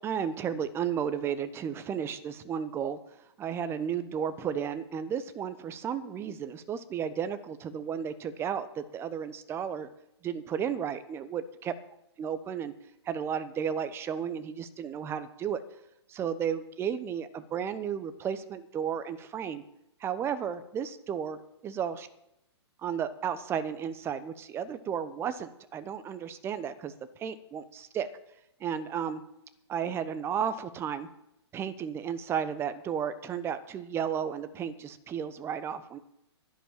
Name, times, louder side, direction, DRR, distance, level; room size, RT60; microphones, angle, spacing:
voice 1, 0.0-3.0 3.4-9.9 10.2-11.7 12.2-12.7 13.1-15.6 16.1-19.6 20.0-22.1 22.8-26.9 27.2-28.1 28.6-29.2 29.7-31.1 31.5-36.0, right 8 dB, 15° right, 12 dB, 0.9 m, -33 dB
11.0 x 10.5 x 7.3 m, 0.84 s
figure-of-eight pair, 125°, 15 cm